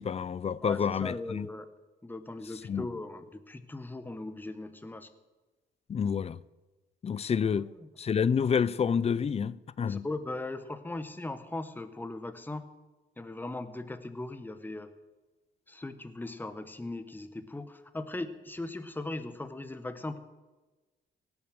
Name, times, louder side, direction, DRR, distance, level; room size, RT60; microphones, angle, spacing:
voice 1, 0.0-1.5 2.6-2.9 5.9-6.4 7.0-7.7 8.0-10.1, left 7 dB, 30° left, 0.4 m, -28 dB
voice 2, 0.6-1.7 2.0-5.1 7.5-7.7 9.9-12.6 13.2-14.9 15.7-20.2, left 2 dB, 10° left, 1.0 m, -39 dB
17.5 x 7.0 x 6.4 m
cardioid pair, 90°, 20 cm